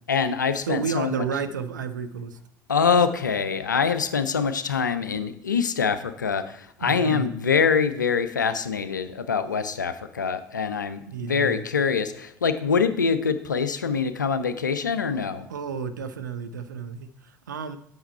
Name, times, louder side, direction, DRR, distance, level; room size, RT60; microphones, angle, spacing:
voice 1, 0.1-1.2 2.7-15.4, left 6 dB, 85° left, 12 dB, 0.4 m, -24 dB
voice 2, 0.6-2.4 6.8-7.3 11.1-11.7 15.5-17.8, right 6 dB, 80° right, 9 dB, 0.5 m, -31 dB
7.9 x 5.4 x 4.3 m, 0.69 s
figure-of-eight pair, 60°, 10 cm